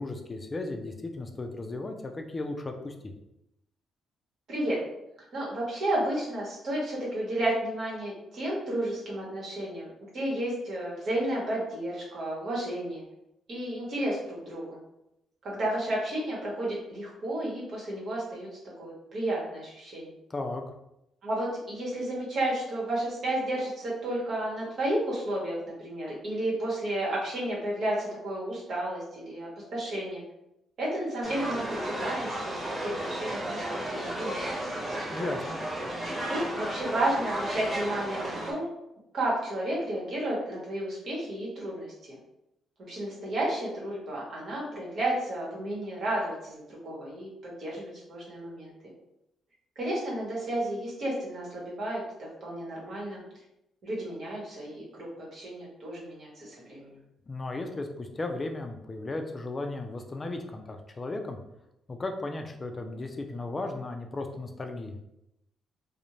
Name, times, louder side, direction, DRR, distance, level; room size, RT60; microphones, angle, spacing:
voice 1, 0.0-2.9 20.3-20.6 35.1-35.6 57.3-61.4 61.9-65.0, left 2 dB, 30° left, 4 dB, 0.4 m, -35 dB
voice 2, 4.5-4.8 5.3-13.0 13.5-14.8 15.4-18.5 18.8-20.1 21.2-30.2 30.8-35.1 36.3-38.7 39.1-42.2 42.9-48.7 49.8-53.2 53.8-56.9, right 1 dB, 55° right, -4 dB, 1.1 m, -32 dB
sound 1, 31.2-38.5, right 1 dB, 20° right, 0.8 m, -33 dB
2.5 x 2.1 x 3.0 m, 0.84 s
cardioid pair, 90°, 0 cm